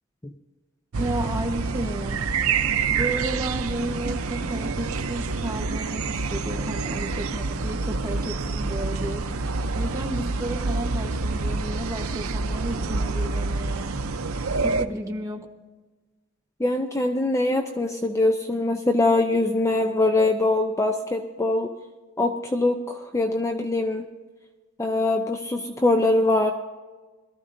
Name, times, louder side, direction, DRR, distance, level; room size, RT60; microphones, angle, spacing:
sound 1, 0.9-14.9, right 4 dB, 90° right, 0.7 m, -27 dB
voice 1, 1.0-2.3 2.9-9.3 9.7-14.1 14.6-15.5, right 1 dB, 15° right, 0 dB, 1.2 m, -33 dB
voice 2, 16.6-21.7 22.2-24.0 24.8-26.5, left 2 dB, 15° left, 4 dB, 0.6 m, -23 dB
22.0 x 13.5 x 2.7 m, 1.3 s
head